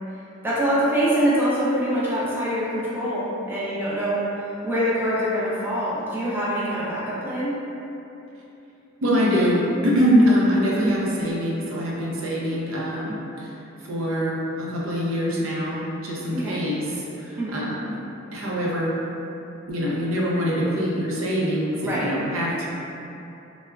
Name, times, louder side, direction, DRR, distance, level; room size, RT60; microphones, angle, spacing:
voice 1, 0.4-4.4 4.6-7.5 10.1-10.3 16.3-16.6 17.4-17.6 21.8-22.1, equal, 10° right, -9 dB, 0.4 m, -24 dB
voice 2, 9.0-13.5 13.8-18.0 18.3-18.9 19.7-22.7, equal, 75° right, -5 dB, 0.5 m, -24 dB
3.5 x 2.0 x 2.2 m, 2.9 s
head